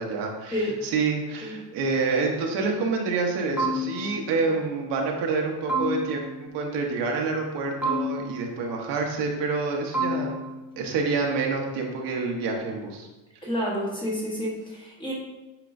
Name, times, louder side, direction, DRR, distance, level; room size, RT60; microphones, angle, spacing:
voice 1, 0.0-10.4 10.8-13.1, right 4 dB, 70° right, 1 dB, 1.2 m, -27 dB
sound 1, 3.6-4.4 5.7-6.5 7.8-8.6 9.9-10.8, equal, 5° right, 0.7 m, -29 dB
voice 2, 13.4-15.1, equal, 10° left, -5 dB, 1.2 m, -29 dB
9.1 x 4.5 x 2.6 m, 1.1 s
cardioid pair, 180°, 43 cm